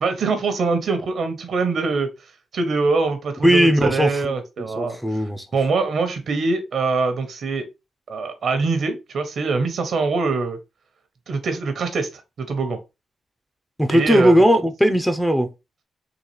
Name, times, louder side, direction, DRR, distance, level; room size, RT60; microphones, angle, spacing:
voice 1, 0.0-2.1 2.5-5.2 5.5-7.7 8.1-10.6 11.3-12.8 13.9-14.4, right 4 dB, 65° right, 0.9 m, -23 dB
voice 2, 3.4-5.5 13.8-15.5, equal, ahead, 0.5 m, -18 dB
3.9 x 2.4 x 3.1 m
cardioid pair, 100°, 0 cm